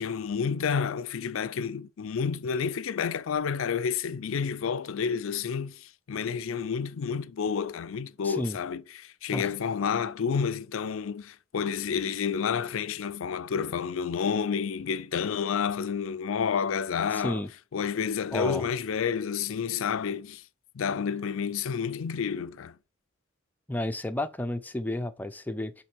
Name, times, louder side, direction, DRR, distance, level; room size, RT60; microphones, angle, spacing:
voice 1, 0.0-17.5 17.7-20.4 20.7-22.8, left 6 dB, 70° left, 0.4 m, -30 dB
voice 2, 8.2-8.6 9.3-9.5 17.1-17.5 18.3-18.7 23.7-25.7, left 1 dB, 10° left, 0.5 m, -31 dB
7.8 x 3.3 x 4.5 m
head